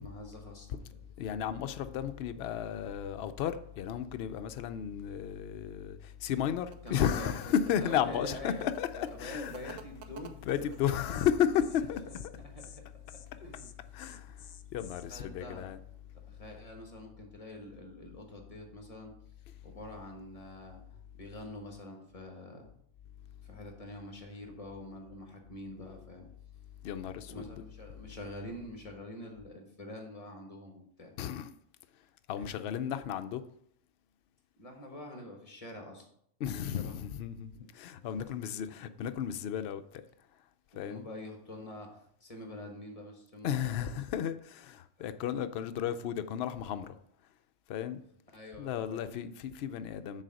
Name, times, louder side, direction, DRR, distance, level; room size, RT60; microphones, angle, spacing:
voice 1, 0.0-1.0 6.8-10.3 10.6-11.3 12.0-12.8 13.4-14.3 14.8-15.7 16.3-19.1 19.6-22.7 23.4-26.3 27.3-31.1 32.4-32.7 34.6-36.1 36.8-37.0 38.0-38.3 40.7-44.3 45.0-45.1 48.3-49.2, left 1 dB, 30° left, 1.3 m, -46 dB
voice 2, 1.2-9.8 10.4-12.0 13.9-14.3 14.7-15.8 26.8-27.6 31.2-31.5 32.3-33.4 36.4-39.8 40.8-41.1 43.4-46.9 47.7-48.0 48.6-50.2, left 9 dB, 65° left, 0.7 m, -33 dB
sound 1, 6.2-11.4, right 7 dB, 90° right, 1.0 m, -55 dB
Insect, 10.7-10.8 11.1-11.3 11.6-11.8 12.1-12.3 12.6-12.8 13.1-13.3 13.5-15.1, left 8 dB, 85° left, 0.3 m, -52 dB
6.6 x 4.1 x 6.3 m
omnidirectional pair, 1.2 m